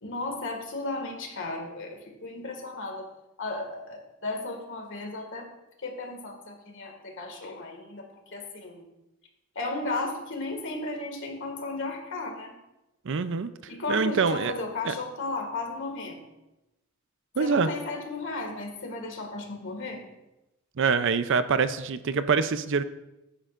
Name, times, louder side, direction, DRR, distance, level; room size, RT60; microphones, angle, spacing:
voice 1, 0.0-3.1 3.4-5.5 5.8-8.9 9.6-12.6 13.7-16.2 17.4-20.0, left 2 dB, 60° left, 2 dB, 2.0 m, -35 dB
voice 2, 13.0-14.5 14.8-14.9 17.4-17.7 20.8-22.8, right 5 dB, 60° right, 12 dB, 0.5 m, -25 dB
14.0 x 9.8 x 2.5 m, 0.95 s
head